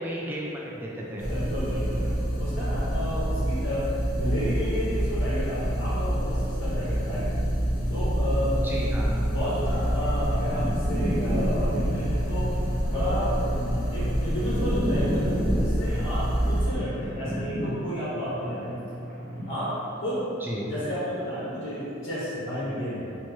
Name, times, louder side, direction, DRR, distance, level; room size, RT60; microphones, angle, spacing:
voice 1, 0.0-1.3 8.6-9.2 20.4-20.7, equal, 10° right, -4 dB, 0.4 m, -33 dB
voice 2, 1.1-7.3 7.9-9.0 9.3-12.5 12.9-18.8 19.5-19.7 20.0-20.2 20.6-23.2, equal, 90° left, -11 dB, 1.1 m, -31 dB
sound 1, 1.2-16.7, equal, 45° left, 0.7 m, -27 dB
sound 2, 9.7-19.8, equal, 40° right, 0.7 m, -33 dB
5.7 x 2.1 x 3.1 m, 2.8 s
head